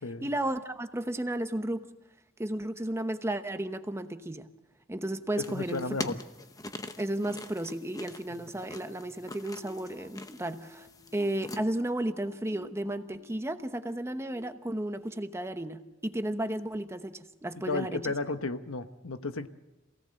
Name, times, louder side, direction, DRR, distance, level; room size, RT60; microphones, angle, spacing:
voice 1, 0.2-1.9 2.4-4.5 4.9-6.0 7.0-18.1, right 1 dB, 15° right, 9 dB, 1.0 m, -33 dB
voice 2, 5.4-6.2 8.3-8.4 17.7-19.5, left 3 dB, 85° left, 9 dB, 1.1 m, -33 dB
sound 1, 5.4-11.6, left 2 dB, 15° left, 0.9 m, -43 dB
sound 2, 9.6-15.2 15.7-16.0 16.5-16.7, equal, 40° left, 3.8 m, -55 dB
27.0 x 17.5 x 7.7 m, 1.0 s
head